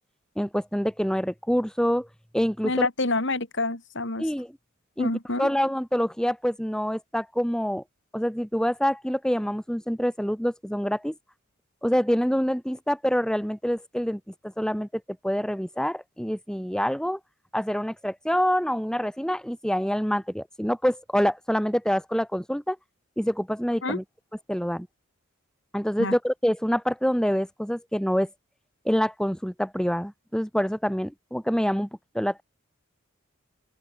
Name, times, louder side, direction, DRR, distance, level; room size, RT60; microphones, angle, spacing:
voice 1, 0.4-2.1 2.3-2.9 4.2-4.5 5.0-5.1 5.4-7.8 8.1-11.1 11.8-17.2 17.5-22.8 23.2-24.0 24.5-24.9 25.7-28.3 28.8-31.9 32.1-32.4, equal, 5° left, 3.1 m, -26 dB
voice 2, 2.6-4.3 5.0-5.5 23.8-24.0 26.0-26.1, left 2 dB, 55° left, 3.6 m, -27 dB
open air
head